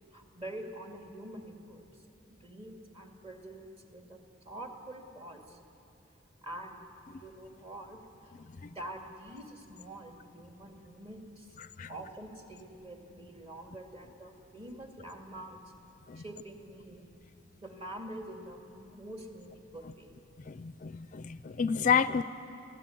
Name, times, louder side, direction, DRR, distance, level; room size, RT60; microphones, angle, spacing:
voice 1, 0.1-1.9 2.3-4.2 4.4-5.6 6.4-11.5 11.9-15.7 16.2-17.0 17.6-20.1, right 1 dB, 30° right, 2 dB, 2.3 m, -46 dB
voice 2, 20.5-22.2, left 6 dB, 40° left, 14 dB, 0.4 m, -30 dB
24.5 x 16.0 x 9.3 m, 2.8 s
head